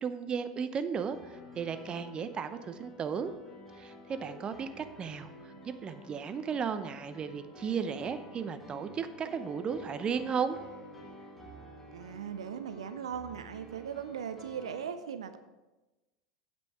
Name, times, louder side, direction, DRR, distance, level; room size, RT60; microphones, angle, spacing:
voice 1, 0.0-3.3 3.8-5.3 5.6-10.6, right 6 dB, 30° right, 10 dB, 0.8 m, -35 dB
Piano, 1.1-14.8, equal, 5° left, 3.5 m, -50 dB
voice 2, 11.9-15.4, right 8 dB, 75° right, 10 dB, 0.6 m, -39 dB
9.1 x 7.7 x 4.7 m, 1.1 s
hypercardioid pair, 80°, 3 cm